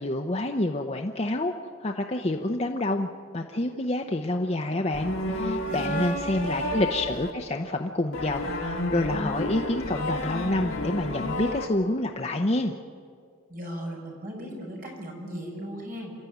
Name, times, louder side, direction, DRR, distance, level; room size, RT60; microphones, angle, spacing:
voice 1, 0.0-1.5 1.8-3.1 3.3-12.7, left 1 dB, 30° left, 3 dB, 0.8 m, -28 dB
sound 1, 4.9-7.3 8.1-11.7, left 1 dB, 65° left, 2.5 m, -31 dB
voice 2, 5.7-6.8 13.5-16.1, right 1 dB, 40° right, -1 dB, 5.6 m, -37 dB
28.0 x 13.0 x 9.3 m, 2.1 s
head